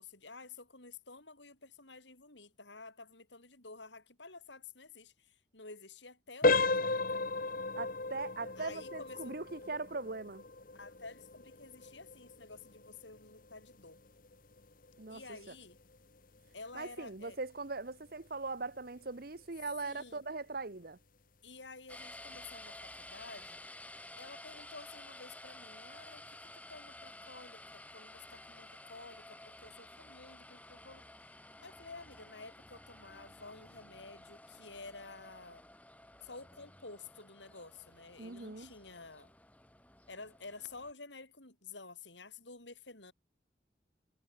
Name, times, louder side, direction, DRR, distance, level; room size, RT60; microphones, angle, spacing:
voice 1, 0.0-7.2 8.6-9.4 10.7-14.0 15.1-15.8 16.5-17.4 19.8-20.2 21.4-23.6 24.1-27.6 27.9-31.0 31.6-35.6 36.2-39.3 40.1-43.1, left 3 dB, 75° left, 7.9 m, -51 dB
sound 1, 6.4-17.1 17.5-17.7 18.3-18.4 18.9-19.0, left 3 dB, 50° left, 1.7 m, -36 dB
voice 2, 7.8-10.4 15.0-15.4 16.7-21.0 38.2-38.7, right 3 dB, 55° right, 1.2 m, -40 dB
sound 2, 21.9-40.9, left 1 dB, 10° left, 7.3 m, -53 dB
head